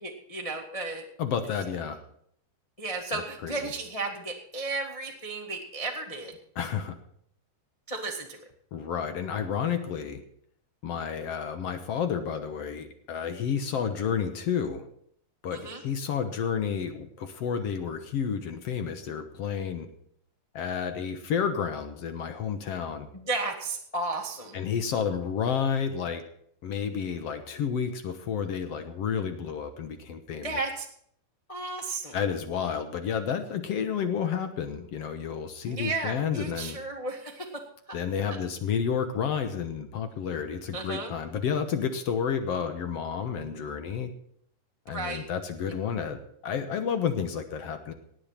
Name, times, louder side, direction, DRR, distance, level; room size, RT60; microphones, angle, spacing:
voice 1, 0.0-1.0 2.8-6.4 7.9-8.4 15.5-15.8 23.1-24.6 30.4-30.9 31.5-32.2 35.7-38.0 40.7-41.1 44.9-45.3, right 3 dB, 25° left, 1 dB, 0.7 m, -34 dB
voice 2, 1.2-2.0 3.1-3.5 6.6-7.0 8.7-10.2 10.8-14.9 15.4-19.9 20.5-23.1 24.5-26.2 26.6-30.6 32.1-36.8 37.9-44.1 44.9-47.9, left 7 dB, 60° left, 8 dB, 1.9 m, -30 dB
17.5 x 8.8 x 5.7 m, 0.66 s
omnidirectional pair, 3.6 m